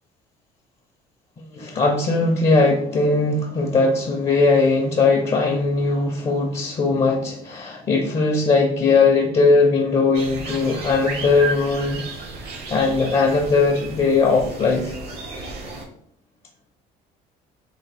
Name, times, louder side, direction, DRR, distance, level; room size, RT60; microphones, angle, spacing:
voice 1, 1.5-12.0 12.7-15.0, left 3 dB, 35° left, 1 dB, 0.5 m, -19 dB
sound 1, 10.1-15.8, right 3 dB, 70° right, 1.0 m, -33 dB
3.4 x 2.2 x 3.3 m, 0.68 s
cardioid pair, 105°, 17 cm